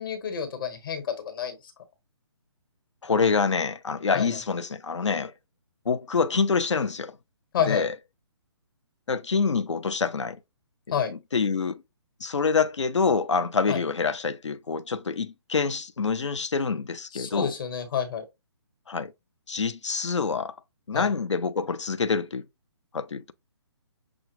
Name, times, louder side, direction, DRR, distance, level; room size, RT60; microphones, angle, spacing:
voice 1, 0.0-1.6 4.1-4.3 7.5-7.9 10.9-11.1 13.7-13.8 17.1-18.2 20.9-21.1, left 8 dB, 50° left, 1.2 m, -29 dB
voice 2, 3.0-5.3 5.9-7.1 7.7-7.9 9.1-10.4 11.1-11.8 12.2-17.5 18.9-19.1 19.5-20.5 20.9-22.4 22.9-23.3, left 5 dB, 80° left, 0.4 m, -26 dB
6.0 x 2.4 x 3.0 m
figure-of-eight pair, 135°, 15 cm